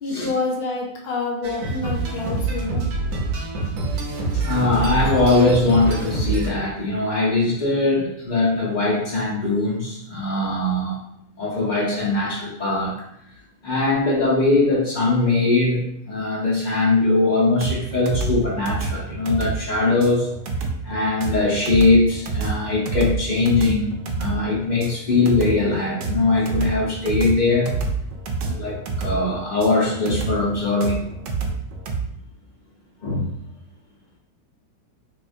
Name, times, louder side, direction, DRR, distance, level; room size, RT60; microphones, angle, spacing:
voice 1, 0.0-2.8, left 3 dB, 75° left, -1 dB, 0.5 m, -27 dB
sound 1, 1.4-6.5, right 3 dB, 65° right, 1.0 m, -25 dB
voice 2, 4.3-11.0 11.4-13.0 13.6-20.3 20.8-27.7 28.4-31.0 33.0-33.3, left 2 dB, 40° left, -5 dB, 0.7 m, -21 dB
sound 2, 17.6-32.0, right 4 dB, 80° right, 1.2 m, -28 dB
3.9 x 2.8 x 2.5 m, 0.74 s
omnidirectional pair, 1.8 m